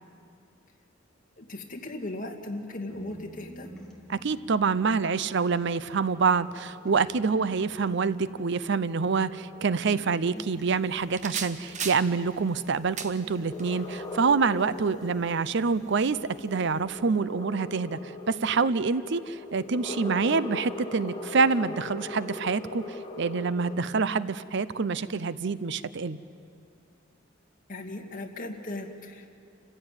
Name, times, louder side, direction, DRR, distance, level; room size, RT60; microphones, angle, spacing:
voice 1, 1.4-3.7 27.7-29.3, left 2 dB, 45° left, 3 dB, 2.0 m, -37 dB
sound 1, 2.9-6.5 6.8-9.6 9.9-10.9, equal, 5° left, 2.8 m, -50 dB
voice 2, 4.1-26.2, right 5 dB, 65° right, 16 dB, 0.6 m, -26 dB
sound 2, 6.4-23.8, left 2 dB, 25° left, 1.6 m, -42 dB
sound 3, 10.4-16.8, right 6 dB, 40° right, 1.2 m, -42 dB
28.5 x 15.5 x 9.0 m, 2.4 s
head